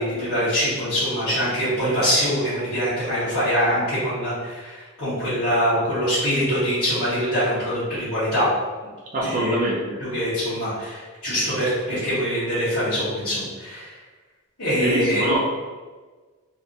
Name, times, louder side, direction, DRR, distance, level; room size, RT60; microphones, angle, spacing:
voice 1, 0.0-8.5 9.2-9.5 10.0-13.9 14.6-15.3, equal, 70° left, -15 dB, 1.4 m, -24 dB
voice 2, 9.1-10.0 14.8-15.4, right 2 dB, 35° right, -5 dB, 0.5 m, -24 dB
3.2 x 2.9 x 2.6 m, 1.4 s
head